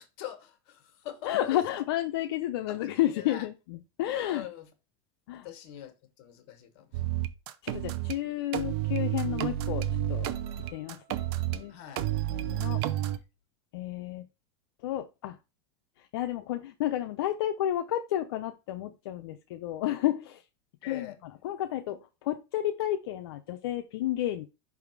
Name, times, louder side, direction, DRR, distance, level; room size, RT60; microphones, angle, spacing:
voice 1, 0.0-1.6 2.7-3.5 4.1-4.7 5.4-7.0 11.7-12.1 20.8-21.2, left 11 dB, 60° left, 1.5 m, -43 dB
voice 2, 1.2-4.5 5.3-5.5 7.6-10.3 10.7-11.3 11.5-12.8 13.7-14.2 14.8-15.4 16.1-20.4 20.9-21.1 21.4-24.4, left 13 dB, 80° left, 0.6 m, -31 dB
sound 1, 6.9-8.1 8.5-11.6 12.0-13.2, right 13 dB, 65° right, 0.7 m, -30 dB
5.8 x 3.5 x 4.7 m
supercardioid pair, 125°, 13 cm